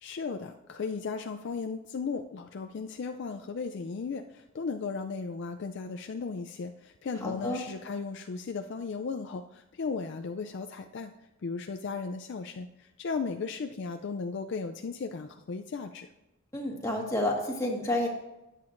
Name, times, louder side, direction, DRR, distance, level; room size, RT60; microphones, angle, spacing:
voice 1, 0.0-11.1 11.4-16.1, left 4 dB, 55° left, 6 dB, 0.4 m, -36 dB
voice 2, 7.2-7.6 16.5-18.1, left 1 dB, 15° left, -1 dB, 1.6 m, -30 dB
13.5 x 9.0 x 2.5 m, 0.96 s
head